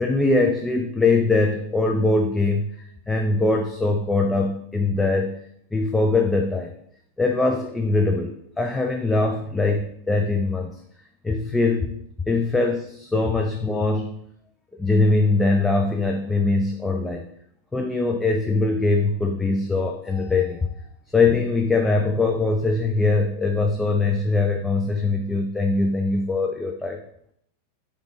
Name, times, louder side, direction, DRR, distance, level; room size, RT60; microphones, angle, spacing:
voice 1, 0.0-2.8 3.1-5.4 5.7-6.7 7.2-10.8 11.2-11.9 12.3-14.1 14.8-17.3 17.7-20.7 21.1-27.0, left 3 dB, 10° left, 3 dB, 0.4 m, -22 dB
5.0 x 3.1 x 3.4 m, 0.71 s
figure-of-eight pair, 90°, 0 cm